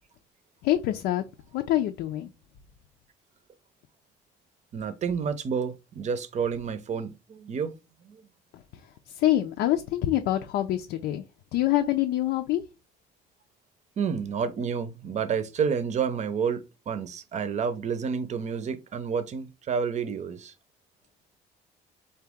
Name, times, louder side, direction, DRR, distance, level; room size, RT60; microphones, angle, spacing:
voice 1, 0.6-1.2 1.5-2.3 8.5-11.2 11.5-12.6, left 13 dB, 80° left, 0.5 m, -26 dB
voice 2, 4.7-7.7 8.0-8.3 14.0-20.5, right 6 dB, 45° right, 0.7 m, -30 dB
3.9 x 2.8 x 3.5 m
cardioid pair, 110°, 17 cm